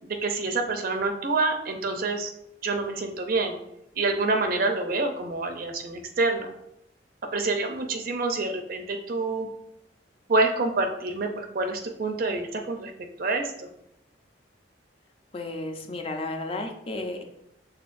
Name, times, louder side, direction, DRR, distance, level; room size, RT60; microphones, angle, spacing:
voice 1, 0.0-2.3 2.6-3.6 3.9-6.5 7.3-9.5 10.3-12.9 13.2-13.7, right 3 dB, 55° right, 5 dB, 0.5 m, -27 dB
voice 2, 15.3-17.2, left 2 dB, 30° left, 4 dB, 0.6 m, -33 dB
5.7 x 3.4 x 2.5 m, 0.80 s
head